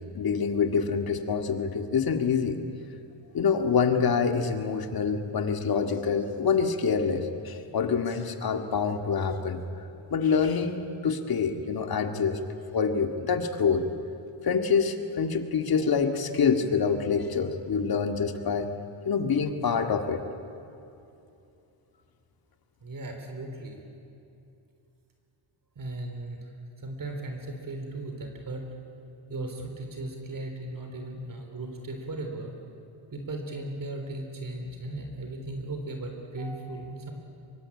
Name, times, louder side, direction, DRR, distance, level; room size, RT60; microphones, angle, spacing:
voice 1, 0.1-2.6 3.3-9.6 10.1-12.4 12.7-13.9 14.4-18.7 19.0-20.2, left 6 dB, 45° left, 6 dB, 2.2 m, -26 dB
voice 2, 22.8-23.8 25.8-26.5 26.8-28.7 29.3-32.5 33.1-37.1, right 2 dB, 40° right, 3 dB, 3.7 m, -37 dB
23.5 x 23.0 x 8.7 m, 2.7 s
cardioid pair, 110°, 48 cm